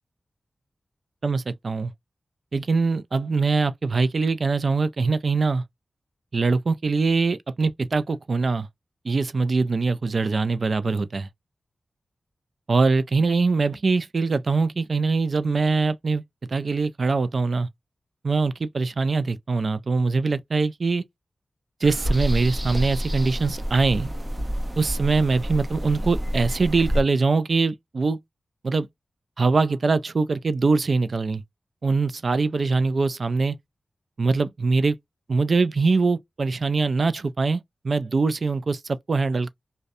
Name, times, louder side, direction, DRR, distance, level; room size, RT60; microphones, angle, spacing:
voice 1, 1.2-1.9 2.5-5.6 6.3-8.7 9.0-11.3 12.7-16.2 16.5-17.7 18.2-21.1 21.8-24.1 24.8-28.2 28.6-28.9 29.4-31.4 31.8-33.6 34.2-35.0 35.3-39.5, right 4 dB, 65° right, 0.3 m, -23 dB
birds night stk, 21.8-27.0, equal, 35° right, 0.8 m, -28 dB
2.6 x 2.1 x 2.4 m
cardioid pair, 55°, 0 cm